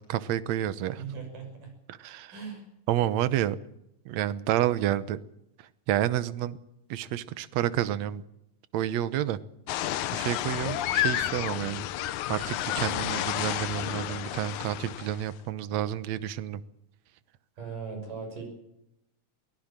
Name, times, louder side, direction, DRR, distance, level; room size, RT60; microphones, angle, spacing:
voice 1, 0.1-1.0 1.9-2.4 2.9-3.6 4.1-5.2 5.6-6.6 6.9-8.2 8.7-9.4 9.7-16.6, right 12 dB, 65° right, 15 dB, 2.0 m, -30 dB
voice 2, 1.0-1.7 2.3-2.6 17.6-18.4, right 5 dB, 85° right, 4 dB, 7.9 m, -38 dB
sound 1, 9.7-15.3, left 13 dB, 75° left, 2.2 m, -31 dB
23.0 x 17.0 x 7.4 m, 0.82 s
omnidirectional pair, 3.7 m